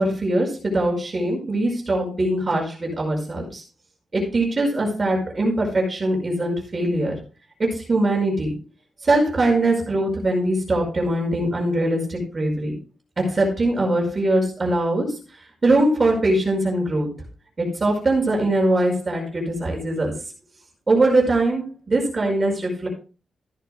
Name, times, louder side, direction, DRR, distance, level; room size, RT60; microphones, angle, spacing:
voice 1, 0.0-3.6 4.1-7.2 7.6-8.5 9.0-12.7 13.2-15.2 15.6-17.1 17.6-20.2 20.9-22.9, right 1 dB, 25° right, -1 dB, 5.3 m, -22 dB
15.0 x 11.5 x 2.2 m, 0.34 s
wide cardioid pair, 160°, 0 cm